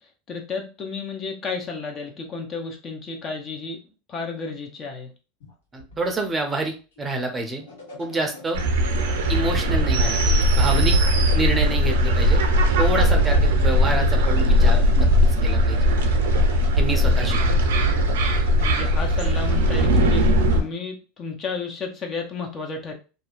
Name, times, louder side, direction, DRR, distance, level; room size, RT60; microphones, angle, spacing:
voice 1, 0.3-3.8 4.1-5.1 17.0-17.5 18.6-22.9, left 4 dB, 35° left, 2 dB, 0.6 m, -32 dB
sound 1, 5.4-20.7, left 2 dB, 85° left, 1.1 m, -42 dB
voice 2, 5.7-7.6 8.0-8.6 9.3-11.0 11.3-12.4 12.8-15.8 16.8-17.6, right 2 dB, 20° right, 4 dB, 0.6 m, -27 dB
sound 2, 8.5-20.6, equal, 85° right, 0.6 m, -19 dB
2.7 x 2.1 x 2.4 m, 0.33 s
supercardioid pair, 110°, 0 cm